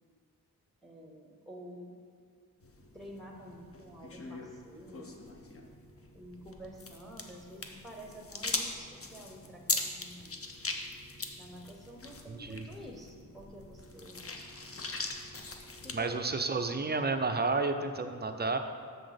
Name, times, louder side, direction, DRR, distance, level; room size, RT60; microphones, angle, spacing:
voice 1, 0.8-2.0 2.9-5.2 6.1-10.4 11.4-14.3 15.8-16.9, equal, ahead, 1 dB, 0.8 m, -49 dB
sound 1, 2.6-16.0, left 3 dB, 35° left, 0.7 m, -41 dB
voice 2, 12.3-12.6 15.9-18.6, right 3 dB, 25° right, 7 dB, 0.5 m, -31 dB
6.9 x 6.1 x 5.1 m, 2.1 s
wide cardioid pair, 120°, 38 cm